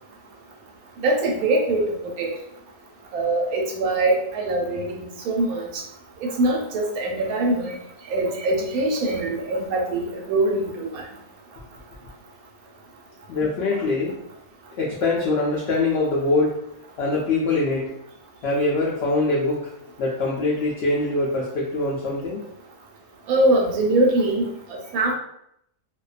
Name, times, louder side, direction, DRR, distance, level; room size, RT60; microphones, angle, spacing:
voice 1, 1.0-2.3 3.1-5.8 6.2-7.8 8.1-11.0 23.3-25.1, right 2 dB, 75° right, 0 dB, 1.0 m, -23 dB
voice 2, 13.3-14.1 14.8-16.5 17.0-17.9 18.4-19.6 20.0-22.4, left 2 dB, 85° left, -4 dB, 0.5 m, -23 dB
2.5 x 2.1 x 2.4 m, 0.75 s
omnidirectional pair, 1.6 m